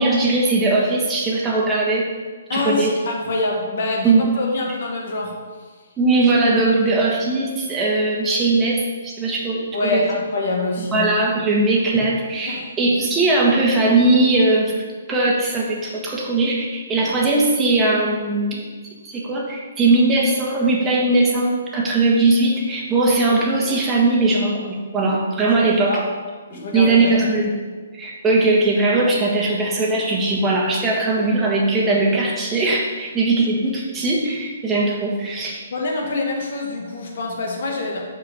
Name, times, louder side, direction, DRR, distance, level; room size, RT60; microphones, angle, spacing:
voice 1, 0.0-2.1 2.5-2.9 4.0-4.2 6.0-10.0 10.9-14.7 15.1-18.7 19.1-26.0 26.5-27.5 27.9-35.6, right 2 dB, 15° right, -4 dB, 1.5 m, -19 dB
voice 2, 2.5-5.3 9.7-11.1 12.5-12.7 25.6-26.0 26.5-27.1 35.7-38.0, left 2 dB, 60° left, 0 dB, 1.7 m, -25 dB
6.5 x 4.7 x 5.5 m, 1.4 s
hypercardioid pair, 145°, 0 cm